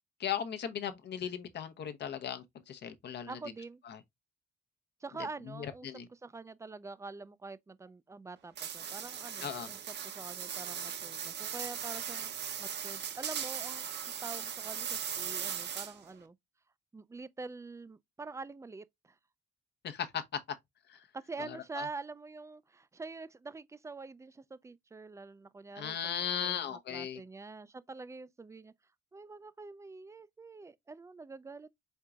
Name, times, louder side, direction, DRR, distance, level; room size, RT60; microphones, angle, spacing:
voice 1, 0.2-3.4 3.8-4.0 5.6-6.1 9.4-9.7 19.8-20.4 20.9-21.1 21.4-21.9 25.8-27.2, left 9 dB, 60° left, 0.8 m, -37 dB
voice 2, 3.3-3.8 5.0-13.9 14.2-16.4 16.9-19.2 21.1-28.7 29.1-31.7, right 3 dB, 15° right, 0.3 m, -46 dB
sound 1, 8.6-16.1, right 8 dB, 60° right, 0.8 m, -39 dB
4.5 x 3.8 x 2.3 m
cardioid pair, 90°, 20 cm